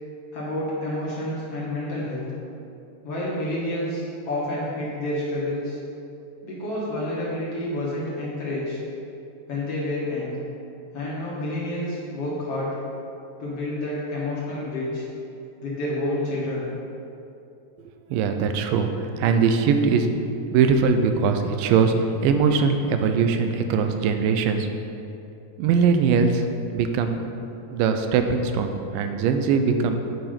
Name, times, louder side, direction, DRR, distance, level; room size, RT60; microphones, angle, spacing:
voice 1, 0.3-2.3 3.0-5.8 6.4-8.8 9.5-10.4 10.9-12.7 13.4-15.1 15.6-16.7, left 1 dB, 55° left, -6 dB, 1.9 m, -29 dB
voice 2, 18.1-20.1 20.5-21.9 22.2-24.7 25.6-26.5 26.7-27.2 27.7-30.0, right 5 dB, 90° right, 6 dB, 2.3 m, -21 dB
9.3 x 4.9 x 5.1 m, 2.7 s
omnidirectional pair, 3.9 m